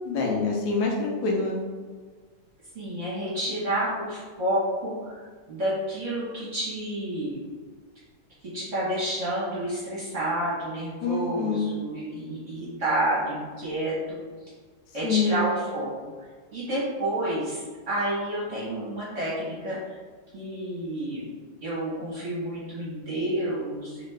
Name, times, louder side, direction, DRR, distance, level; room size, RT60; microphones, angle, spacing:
voice 1, 0.0-1.6 11.0-11.7 15.0-15.4, left 4 dB, 85° left, 0 dB, 1.4 m, -26 dB
voice 2, 2.7-5.2 5.5-7.4 8.5-14.2 14.9-15.9 16.5-19.8 20.3-21.3 21.6-24.1, right 1 dB, 50° right, -8 dB, 1.0 m, -29 dB
3.2 x 2.9 x 3.2 m, 1.5 s
omnidirectional pair, 2.1 m